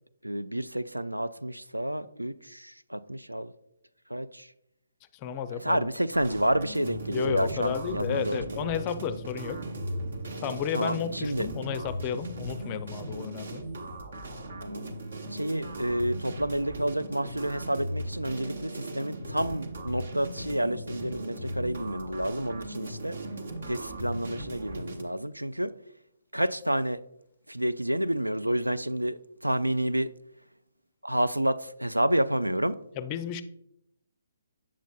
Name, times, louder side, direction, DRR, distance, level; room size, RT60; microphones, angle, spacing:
voice 1, 0.2-3.5 4.1-4.4 5.6-8.8 10.7-11.5 14.6-14.9 15.3-23.2 23.7-25.7 26.3-27.0 27.5-30.1 31.0-32.8, right 1 dB, 90° right, 0.3 m, -29 dB
voice 2, 5.1-5.9 7.1-9.6 10.4-13.6 33.0-33.4, left 8 dB, 30° left, 0.4 m, -33 dB
sound 1, 6.1-25.0, right 1 dB, 60° right, 0.9 m, -38 dB
sound 2, 6.8-12.6, right 2 dB, 35° right, 1.1 m, -46 dB
7.3 x 7.0 x 2.3 m
figure-of-eight pair, 135°, 0 cm